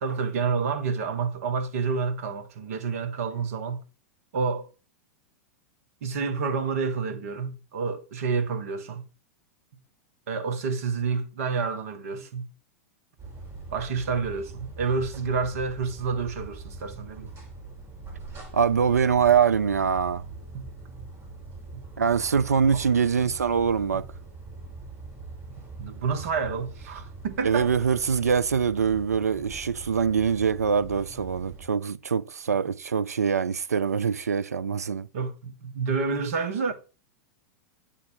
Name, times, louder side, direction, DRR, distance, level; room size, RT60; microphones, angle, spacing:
voice 1, 0.0-3.8 4.3-4.7 6.0-9.0 10.3-12.5 13.7-17.3 20.5-20.7 22.7-22.8 23.2-23.3 25.8-27.7 35.1-36.7, right 5 dB, 65° right, 1.4 m, -29 dB
sound 1, 13.2-31.6, right 3 dB, 30° right, 3.7 m, -43 dB
voice 2, 18.5-20.2 22.0-24.1 27.4-35.1, right 6 dB, 90° right, 0.4 m, -24 dB
9.6 x 3.7 x 4.5 m
hypercardioid pair, 100°, 8 cm